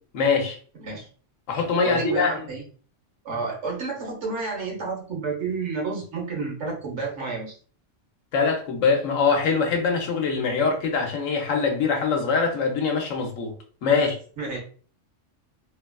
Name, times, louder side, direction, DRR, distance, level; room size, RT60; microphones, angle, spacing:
voice 1, 0.1-0.6 1.5-2.3 8.3-13.5 13.8-14.2, left 5 dB, 90° left, 1.1 m, -23 dB
voice 2, 1.8-2.6 3.2-7.6 14.4-14.6, right 3 dB, 70° right, 1.3 m, -30 dB
3.2 x 2.4 x 2.2 m
omnidirectional pair, 1.3 m